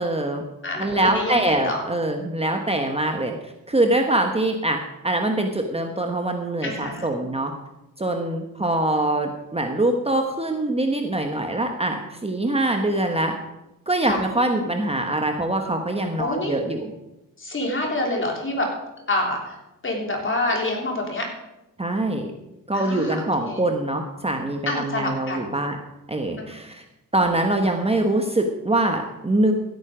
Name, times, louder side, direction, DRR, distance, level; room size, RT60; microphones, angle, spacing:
voice 1, 0.0-0.4 0.8-7.5 8.0-13.3 13.9-16.9 21.8-22.3 22.7-25.8 26.1-26.8 27.1-29.5, right 1 dB, 15° right, 4 dB, 1.2 m, -24 dB
voice 2, 0.6-1.8 6.6-7.1 14.0-14.2 16.2-16.6 17.4-18.7 19.1-19.6 19.8-21.3 22.7-23.6 24.7-25.5 26.4-26.5, left 2 dB, 35° left, 0 dB, 3.7 m, -27 dB
15.5 x 9.3 x 5.0 m, 0.93 s
cardioid pair, 100°, 34 cm